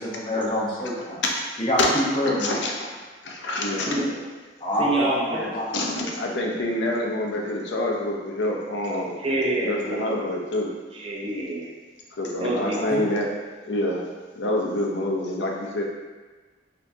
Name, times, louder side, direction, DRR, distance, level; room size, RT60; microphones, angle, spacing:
voice 1, 0.0-1.2 1.6-2.6 4.6-5.7 12.7-13.0, equal, 30° left, -6 dB, 0.9 m, -26 dB
voice 2, 2.4-2.7 3.2-4.1 5.7-9.2 9.6-10.7 12.2-13.3 13.6-14.0 14.4-15.8, left 1 dB, 80° left, 0 dB, 0.6 m, -26 dB
voice 3, 3.9-4.2 4.8-5.5 9.2-10.3 10.9-11.7 12.4-12.9, right 1 dB, 30° right, -4 dB, 0.6 m, -27 dB
4.3 x 2.8 x 2.6 m, 1.3 s
head